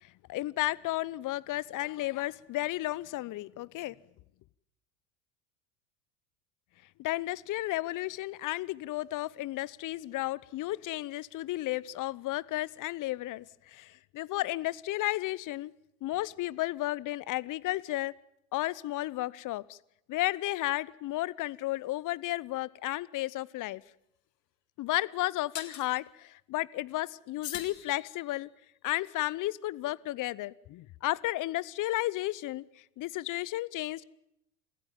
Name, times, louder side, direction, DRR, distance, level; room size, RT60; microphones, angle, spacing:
voice 1, 0.0-3.9 7.0-15.7 16.0-18.1 18.5-19.8 20.1-23.8 24.8-28.5 28.8-32.6 33.0-34.0, left 17 dB, 40° left, 21 dB, 0.9 m, -33 dB
sound 1, 23.6-23.7 25.5-25.9 27.4-28.5, left 12 dB, 75° left, 3.4 m, -42 dB
28.0 x 15.5 x 9.1 m, 0.81 s
hypercardioid pair, 85°, 49 cm